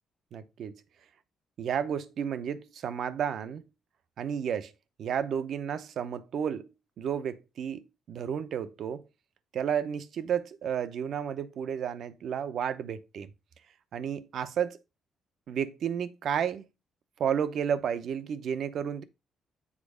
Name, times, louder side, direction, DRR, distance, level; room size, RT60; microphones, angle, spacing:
voice 1, 0.3-0.7 1.6-3.6 4.2-4.7 5.0-6.7 7.0-7.8 8.1-9.0 9.5-13.3 13.9-14.8 15.5-16.7 17.2-19.0, right 8 dB, 65° right, 0.7 m, -32 dB
7.4 x 4.0 x 4.9 m
cardioid pair, 90°, 0 cm